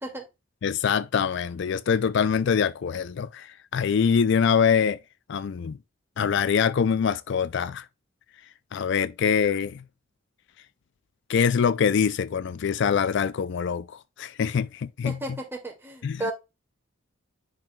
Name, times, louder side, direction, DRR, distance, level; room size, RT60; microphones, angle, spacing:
voice 1, 0.6-5.0 5.3-5.8 6.2-7.8 8.7-9.8 11.3-13.9 14.2-15.4 16.0-16.3, left 6 dB, 60° left, 0.4 m, -24 dB
voice 2, 15.0-16.3, right 1 dB, 10° right, 2.2 m, -33 dB
10.5 x 4.9 x 2.3 m
head